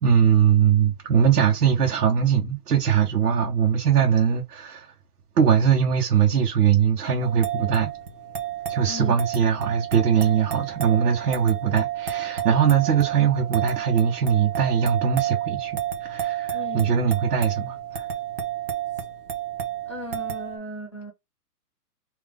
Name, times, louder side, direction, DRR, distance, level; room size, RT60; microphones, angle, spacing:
voice 1, 0.0-4.9 5.4-7.9 8.7-18.1, right 8 dB, 70° right, 1.2 m, -21 dB
sound 1, 7.2-20.6, right 11 dB, 35° right, 0.7 m, -31 dB
voice 2, 8.8-9.2 16.5-17.0 19.8-21.1, equal, 20° left, 0.5 m, -36 dB
3.6 x 2.8 x 3.6 m
hypercardioid pair, 170°, 48 cm